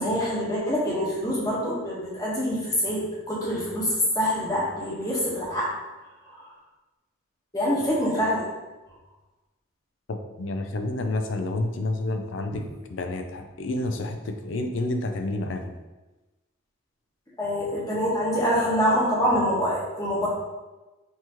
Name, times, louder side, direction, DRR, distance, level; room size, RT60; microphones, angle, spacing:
voice 1, 0.0-3.9 4.1-5.7 6.2-6.5 7.5-8.4 17.4-20.3, equal, 20° left, -7 dB, 1.2 m, -25 dB
voice 2, 10.1-12.6 12.9-15.7, left 2 dB, 65° left, 6 dB, 0.4 m, -29 dB
5.6 x 3.0 x 3.0 m, 1.1 s
head